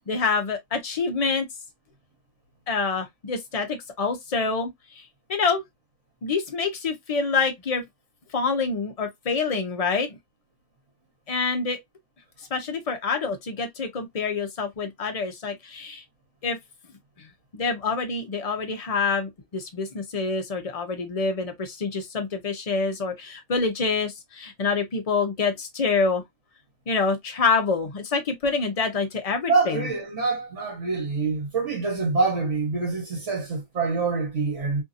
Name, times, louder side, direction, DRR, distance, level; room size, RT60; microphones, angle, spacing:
voice 1, 0.0-1.5 2.7-5.0 5.3-5.6 6.2-7.8 8.3-10.2 11.3-11.8 12.5-16.0 16.4-16.6 17.2-26.2 26.9-29.9, left 4 dB, 60° left, 0.3 m, -26 dB
voice 2, 29.5-34.8, right 4 dB, 60° right, 1.2 m, -25 dB
2.7 x 2.6 x 2.4 m
omnidirectional pair, 1.4 m